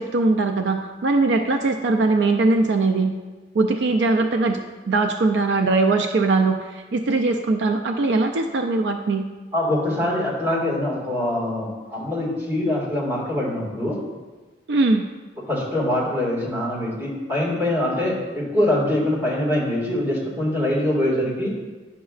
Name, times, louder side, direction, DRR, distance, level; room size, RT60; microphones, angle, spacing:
voice 1, 0.0-3.2 3.5-9.3 14.7-15.1, right 3 dB, 65° right, 5 dB, 0.4 m, -21 dB
voice 2, 9.5-14.0 15.5-21.5, left 1 dB, 10° right, -6 dB, 1.9 m, -23 dB
10.0 x 6.0 x 2.4 m, 1.3 s
head